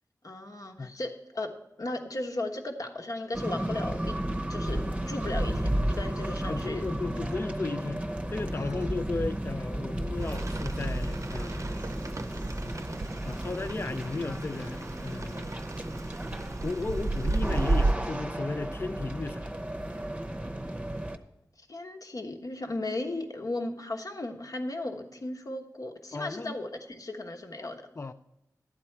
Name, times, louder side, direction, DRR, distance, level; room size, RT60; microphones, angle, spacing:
voice 1, 0.2-4.2 4.5-6.8 8.5-8.9 21.7-27.8, left 2 dB, 60° left, 1.1 m, -36 dB
sound 1, 3.3-21.2, right 1 dB, 15° right, 0.8 m, -33 dB
voice 2, 6.5-11.8 13.2-15.6 16.6-19.5 26.1-26.6 27.6-28.1, left 3 dB, 35° left, 0.4 m, -35 dB
Rain, 10.2-17.9, right 2 dB, 50° right, 0.6 m, -33 dB
12.0 x 8.4 x 4.5 m
cardioid pair, 50°, 7 cm